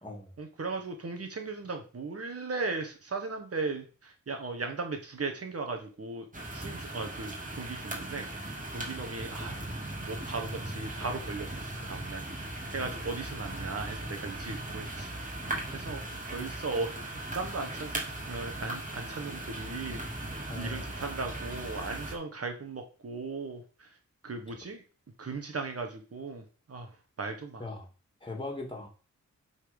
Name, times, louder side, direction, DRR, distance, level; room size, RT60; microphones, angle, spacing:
voice 1, 0.4-6.3 6.5-9.6 10.0-12.2 12.7-15.2 15.7-23.6 24.2-24.8 25.2-26.4 26.7-26.9 27.2-27.6, right 3 dB, 50° right, 4 dB, 1.5 m, -37 dB
sound 1, 6.3-22.1, right 2 dB, 25° right, 2.5 m, -38 dB
voice 2, 20.5-20.8 27.6-27.9 28.2-28.9, left 2 dB, 15° left, 0 dB, 2.5 m, -39 dB
8.4 x 4.3 x 5.4 m, 0.36 s
wide cardioid pair, 95°, 30 cm